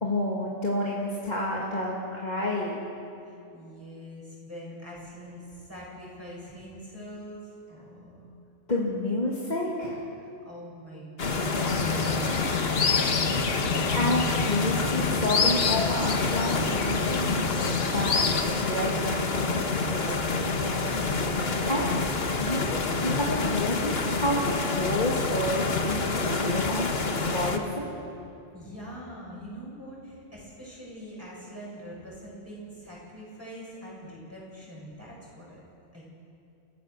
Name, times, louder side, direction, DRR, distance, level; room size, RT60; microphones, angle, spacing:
voice 1, 0.0-2.8 8.7-10.0 13.9-17.3 17.9-18.2 18.6-20.5 21.7-21.9 22.4-28.0, left 1 dB, 35° left, -4 dB, 2.5 m, -30 dB
voice 2, 3.3-8.3 10.2-13.3 28.5-35.6 35.9-36.1, equal, 10° right, -6 dB, 7.5 m, -43 dB
sound 1, 11.2-27.6, left 3 dB, 55° left, 1.6 m, -28 dB
sound 2, 11.6-18.4, left 5 dB, 80° left, 1.5 m, -29 dB
29.5 x 18.0 x 6.7 m, 2.6 s
omnidirectional pair, 1.3 m